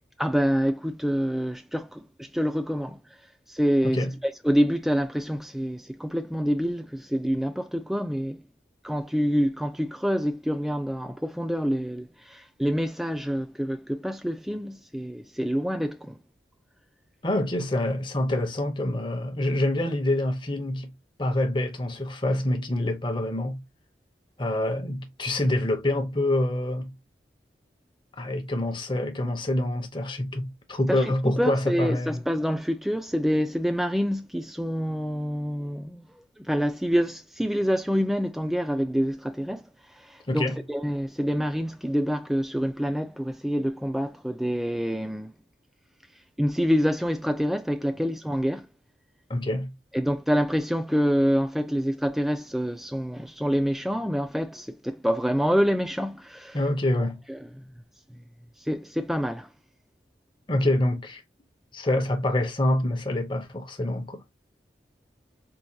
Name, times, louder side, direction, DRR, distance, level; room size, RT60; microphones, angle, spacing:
voice 1, 0.2-3.0 3.5-4.0 4.4-8.4 8.8-16.2 30.9-39.7 39.9-45.4 46.4-48.7 49.9-56.6 57.3-57.7 58.1-58.2 58.6-59.5, equal, ahead, 0.3 m, -27 dB
voice 2, 17.2-20.9 21.2-23.6 24.4-26.9 28.2-32.2 40.3-40.6 49.3-49.7 56.5-57.2 60.5-61.2 61.7-64.2, left 1 dB, 25° left, 0.7 m, -26 dB
4.6 x 2.3 x 2.7 m
head